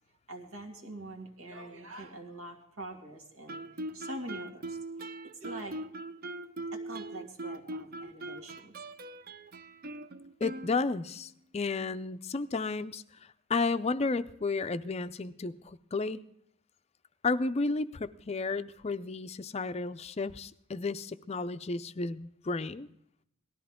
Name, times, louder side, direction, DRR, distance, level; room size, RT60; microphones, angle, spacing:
voice 1, 0.3-3.7 3.9-4.8 5.4-5.8 6.7-8.7, right 1 dB, 85° right, 2 dB, 2.3 m, -44 dB
Guitar, 3.5-11.2, right 2 dB, 40° right, 0.5 m, -41 dB
voice 2, 10.4-13.0 13.5-16.2 17.2-22.9, left 3 dB, 30° left, 12 dB, 0.4 m, -32 dB
18.5 x 13.5 x 3.6 m, 0.72 s
head